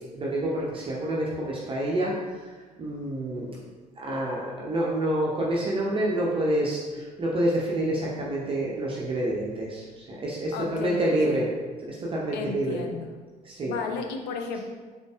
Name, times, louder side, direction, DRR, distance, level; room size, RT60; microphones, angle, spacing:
voice 1, 0.1-2.5 2.8-3.6 4.0-11.5 11.8-12.9 13.4-13.8 14.5-14.6, right 1 dB, 25° right, -5 dB, 0.6 m, -28 dB
voice 2, 10.5-11.5 12.3-13.2 13.6-14.6, left 5 dB, 55° left, 3 dB, 0.5 m, -34 dB
3.8 x 3.6 x 2.4 m, 1.4 s
figure-of-eight pair, 55°, 21 cm